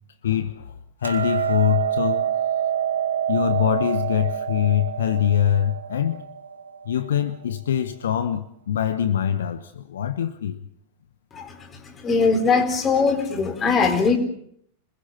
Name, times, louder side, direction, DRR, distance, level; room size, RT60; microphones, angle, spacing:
voice 1, 0.2-0.7 1.0-2.3 3.3-6.3 6.8-10.6, left 10 dB, 65° left, 1.0 m, -23 dB
Hammer, 1.0-7.3, right 9 dB, 75° right, 2.1 m, -27 dB
voice 2, 12.0-14.2, left 4 dB, 25° left, 4.1 m, -20 dB
26.5 x 21.0 x 5.7 m
figure-of-eight pair, 90°, 0 cm